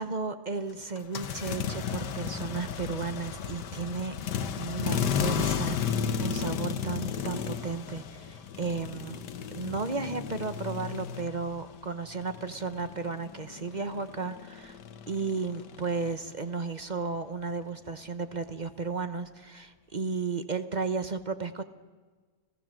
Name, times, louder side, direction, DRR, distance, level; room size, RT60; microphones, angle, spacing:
voice 1, 0.0-4.1 4.6-9.2 9.5-14.8 15.1-21.6, right 4 dB, 35° right, 10 dB, 0.8 m, -34 dB
sound 1, 1.0-11.8 12.1-16.2, left 7 dB, 85° left, 1.7 m, -34 dB
30.0 x 16.0 x 7.5 m, 1.4 s
omnidirectional pair, 1.8 m